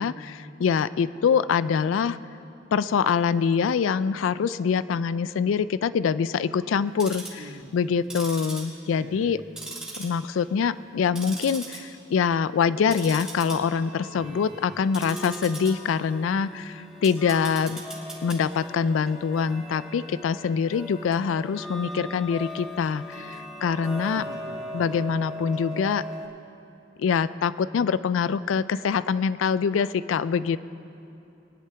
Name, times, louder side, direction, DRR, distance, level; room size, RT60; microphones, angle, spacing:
voice 1, 0.0-2.2 2.7-7.4 7.7-9.4 10.0-17.8 18.2-24.2 24.7-26.0 27.0-30.6, left 6 dB, 85° left, 16 dB, 0.3 m, -24 dB
Tick-tock, 6.8-7.4 8.0-9.3 9.6-10.4 10.8-11.8 12.2-12.4 12.8-26.3, equal, 5° right, 2.5 m, -39 dB
voice 2, 7.4-7.9 8.9-9.4 14.1-14.8 24.1-24.7, right 1 dB, 85° right, 3 dB, 1.3 m, -45 dB
23.5 x 10.5 x 3.4 m, 2.7 s
head